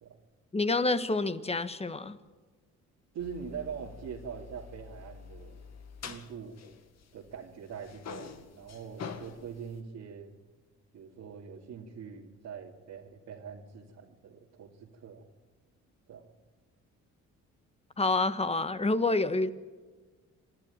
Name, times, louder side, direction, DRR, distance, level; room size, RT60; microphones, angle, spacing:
voice 1, 0.5-2.2 18.0-19.5, left 3 dB, 20° left, 12 dB, 1.4 m, -28 dB
voice 2, 3.1-5.6 6.1-6.6 7.1-10.3 10.9-15.2 16.1-16.3, right 7 dB, 75° right, -4 dB, 2.7 m, -43 dB
sound 1, 3.2-7.4 7.7-9.8, left 6 dB, 60° left, 2.1 m, -46 dB
27.0 x 12.0 x 9.0 m, 1.4 s
cardioid pair, 90°, 30 cm